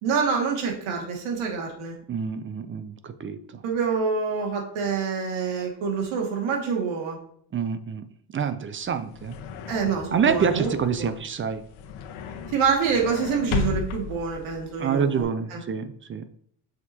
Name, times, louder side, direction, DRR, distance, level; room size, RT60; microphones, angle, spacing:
voice 1, 0.0-1.9 3.6-7.2 9.7-10.7 11.0-11.1 12.5-15.6, right 5 dB, 80° right, 1 dB, 2.1 m, -26 dB
voice 2, 2.1-3.4 7.5-8.1 8.3-9.3 10.1-11.6 14.8-16.2, right 6 dB, 25° right, 11 dB, 0.5 m, -26 dB
sound 1, 8.8-15.2, left 6 dB, 75° left, 1.1 m, -35 dB
7.1 x 6.6 x 2.8 m, 0.62 s
cardioid pair, 125°, 48 cm